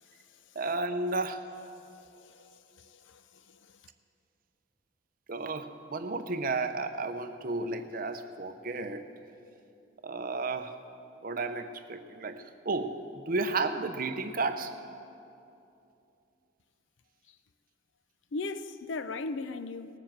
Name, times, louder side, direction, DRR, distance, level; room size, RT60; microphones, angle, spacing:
voice 1, 0.5-1.4 5.3-9.0 10.0-10.8 11.2-14.7, right 3 dB, 45° right, 0.7 m, -33 dB
voice 2, 2.8-3.2 18.3-19.9, left 3 dB, 65° left, 0.5 m, -37 dB
19.0 x 7.1 x 7.4 m
head